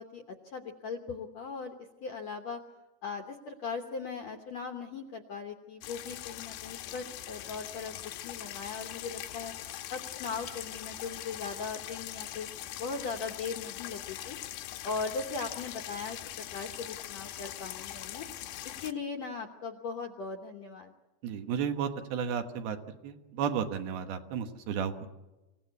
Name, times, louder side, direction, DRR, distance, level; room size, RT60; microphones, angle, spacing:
voice 1, 0.0-1.7 2.0-2.6 3.0-9.5 9.9-12.5 12.8-14.4 14.8-16.2 16.5-18.3 18.6-20.9, left 5 dB, 70° left, 5 dB, 1.6 m, -39 dB
sound 1, 5.8-18.9, left 13 dB, 85° left, 2.9 m, -42 dB
voice 2, 21.2-22.8 23.0-25.1, right 7 dB, 75° right, 7 dB, 3.1 m, -33 dB
26.5 x 16.5 x 8.2 m, 1.1 s
omnidirectional pair, 4.5 m